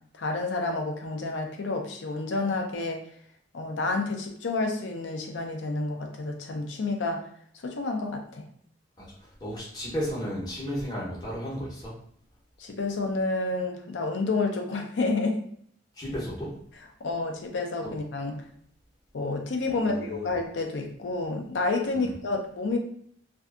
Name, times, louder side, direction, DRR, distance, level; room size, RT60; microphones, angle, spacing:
voice 1, 0.2-3.0 3.5-7.2 7.6-8.4 12.6-15.4 17.0-18.3 19.1-22.8, left 3 dB, 75° left, 3 dB, 0.5 m, -29 dB
voice 2, 9.0-11.9 16.0-16.5 17.8-17.9 19.7-20.3 21.9-22.1, equal, 20° left, -6 dB, 0.7 m, -34 dB
2.6 x 2.3 x 2.3 m, 0.63 s
head